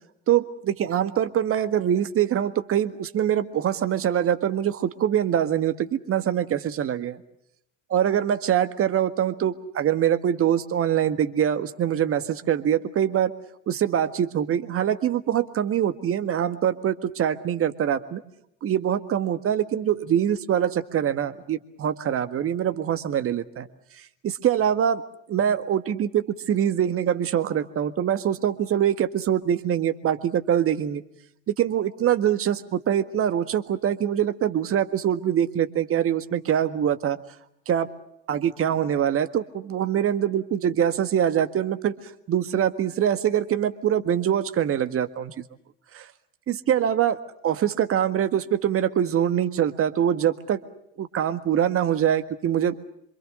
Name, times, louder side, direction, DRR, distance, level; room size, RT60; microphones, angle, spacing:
voice 1, 0.3-7.2 7.9-13.3 13.7-18.2 18.6-23.7 24.0-25.0 25.3-31.0 31.6-37.2 37.7-37.9 38.3-42.0 42.3-45.3 45.9-46.1 46.5-50.6 51.0-52.9, right 9 dB, 35° right, 10 dB, 1.8 m, -24 dB
27.5 x 25.5 x 6.5 m, 0.77 s
figure-of-eight pair, 70°, 37 cm